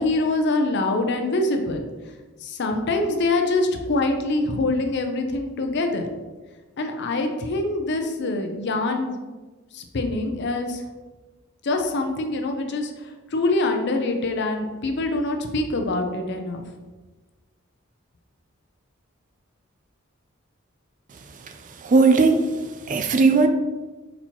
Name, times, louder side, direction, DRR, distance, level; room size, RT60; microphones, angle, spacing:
voice 1, 0.0-1.9 2.4-6.1 6.8-9.1 9.7-10.8 11.6-16.6, left 2 dB, 55° left, 5 dB, 0.5 m, -24 dB
voice 2, 21.3-23.5, right 4 dB, 40° right, 6 dB, 0.4 m, -19 dB
4.4 x 4.1 x 2.8 m, 1.3 s
head